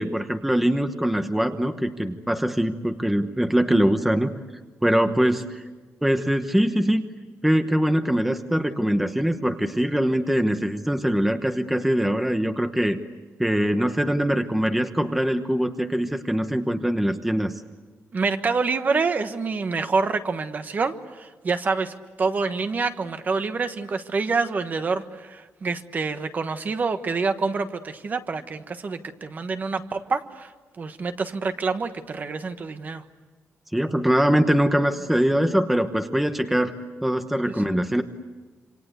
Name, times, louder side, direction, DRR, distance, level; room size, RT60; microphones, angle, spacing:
voice 1, 0.0-4.3 4.8-5.6 6.0-7.0 7.4-13.0 13.4-17.5 33.7-36.7 37.0-38.0, equal, 5° right, 7 dB, 1.0 m, -22 dB
voice 2, 18.1-30.5 30.8-33.0 37.4-37.5, right 4 dB, 35° right, 9 dB, 1.3 m, -27 dB
27.5 x 26.5 x 8.1 m, 1.3 s
wide cardioid pair, 175°, 5 cm